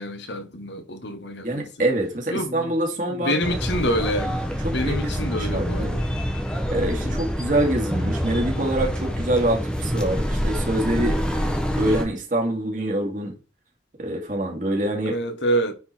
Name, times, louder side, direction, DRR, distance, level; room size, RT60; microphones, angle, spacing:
voice 1, 0.0-1.7 2.3-2.7 3.1-6.2 6.9-7.2 11.4-11.5 15.0-15.7, equal, 80° left, 1.4 m, -27 dB
voice 2, 1.4-3.4 4.6-6.0 6.7-11.5 11.7-13.4 14.0-15.2, right 1 dB, 45° right, 2.3 m, -25 dB
sound 1, 3.4-12.0, equal, 5° left, 0.9 m, -26 dB
9.4 x 3.8 x 4.4 m
head